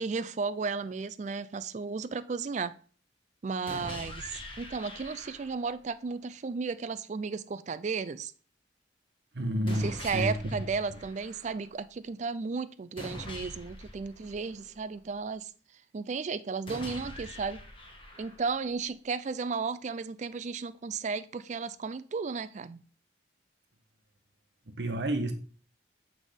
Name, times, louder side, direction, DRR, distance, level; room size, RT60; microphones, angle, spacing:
voice 1, 0.0-2.7 3.4-8.3 9.7-15.5 15.9-17.6 18.2-22.8, right 4 dB, 40° right, 14 dB, 0.4 m, -34 dB
sound 1, 3.7-5.7 9.7-11.7 13.0-15.0 16.7-18.7, left 1 dB, 30° left, 1.2 m, -44 dB
voice 2, 9.3-10.4 24.7-25.3, right 1 dB, 65° right, 6 dB, 1.1 m, -30 dB
8.5 x 3.5 x 5.1 m, 0.41 s
head